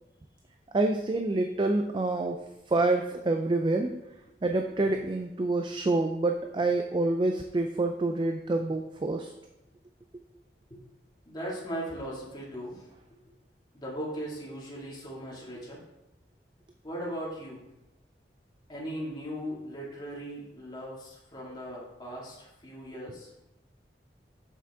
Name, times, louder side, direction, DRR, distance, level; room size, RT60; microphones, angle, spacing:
voice 1, 0.7-4.0 4.4-9.3, right 2 dB, 25° right, 5 dB, 0.4 m, -27 dB
voice 2, 11.3-12.9 13.7-15.8 16.8-17.7 18.7-23.3, equal, 25° left, -5 dB, 2.0 m, -38 dB
7.3 x 5.9 x 3.5 m, 0.94 s
head